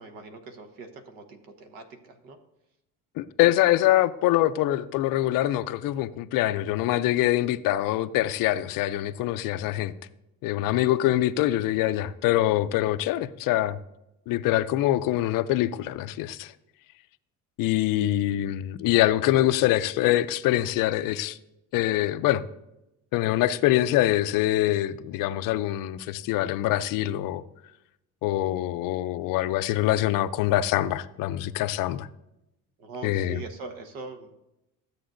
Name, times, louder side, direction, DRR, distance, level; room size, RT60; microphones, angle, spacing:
voice 1, 0.0-2.4 32.8-34.3, right 3 dB, 80° right, 1.2 m, -42 dB
voice 2, 3.2-9.9 10.4-13.8 14.3-16.5 17.6-21.4 21.7-22.4 23.1-27.4 28.2-32.1 33.0-33.4, left 14 dB, 70° left, 0.5 m, -24 dB
13.0 x 7.8 x 2.6 m
cardioid pair, 125°, 34 cm